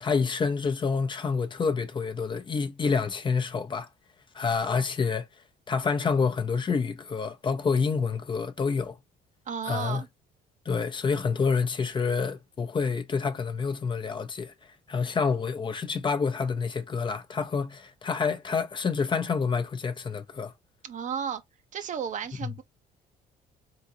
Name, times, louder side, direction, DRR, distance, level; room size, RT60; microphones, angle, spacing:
voice 1, 0.0-3.9 4.3-5.3 5.7-9.0 9.7-10.0 10.7-14.5 14.9-20.5 22.4-22.5, left 5 dB, 30° left, 0.7 m, -28 dB
voice 2, 9.5-10.1 20.8-21.4 21.7-22.6, right 7 dB, 50° right, 0.8 m, -33 dB
3.8 x 3.7 x 2.7 m
cardioid pair, 110°, 17 cm